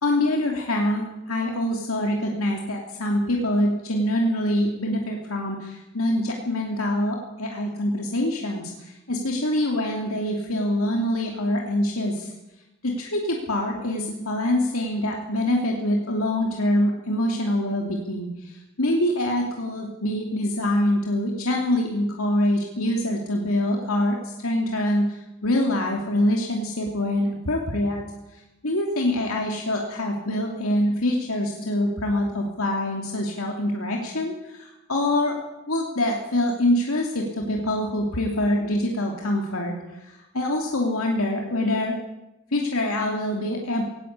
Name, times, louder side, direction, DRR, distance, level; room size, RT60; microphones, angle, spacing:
voice 1, 0.0-12.3 12.8-28.0 28.3-35.4 35.7-42.0 42.5-43.8, left 1 dB, 80° left, 0 dB, 2.9 m, -25 dB
18.5 x 17.5 x 8.4 m, 0.97 s
head